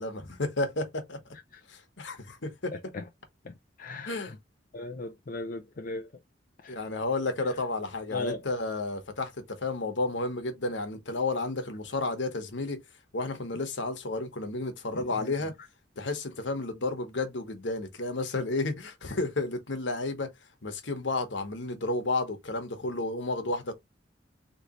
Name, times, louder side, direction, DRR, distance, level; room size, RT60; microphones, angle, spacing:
voice 1, 0.0-1.3 1.7-2.9 4.1-4.3 6.7-12.8 13.1-15.5 16.0-20.3 20.6-23.7, left 2 dB, 70° left, 1.2 m, -32 dB
voice 2, 3.8-4.3 4.7-6.1 6.6-6.8 8.1-8.4, left 3 dB, 45° left, 0.5 m, -36 dB
4.0 x 3.2 x 3.0 m
head